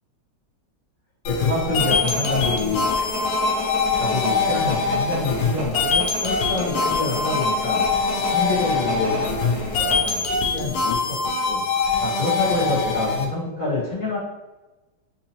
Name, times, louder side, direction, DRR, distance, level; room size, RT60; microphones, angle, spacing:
sound 1, 1.3-13.3, left 4 dB, 90° left, 1.5 m, -23 dB
voice 1, 1.3-2.9 3.9-7.8 8.2-11.2 11.5-11.6 12.0-14.2, left 3 dB, 50° left, -9 dB, 1.9 m, -27 dB
sound 2, 1.8-10.2, left 2 dB, 50° right, 1.4 m, -31 dB
4.3 x 2.6 x 2.9 m, 1.1 s
omnidirectional pair, 2.4 m